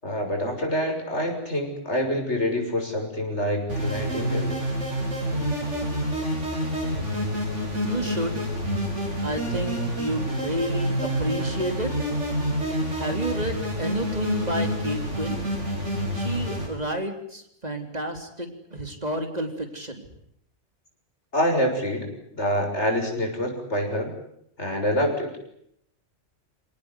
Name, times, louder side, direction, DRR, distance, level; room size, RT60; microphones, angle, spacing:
voice 1, 0.0-4.5 21.3-24.1 24.6-25.4, equal, 70° left, 3 dB, 7.1 m, -26 dB
sound 1, 3.7-16.7, equal, 80° right, 8.7 m, -28 dB
voice 2, 7.8-8.4 9.2-11.9 13.0-15.5 16.1-20.0, right 1 dB, 35° right, 5 dB, 3.9 m, -30 dB
27.5 x 18.5 x 10.0 m, 0.73 s
omnidirectional pair, 1.2 m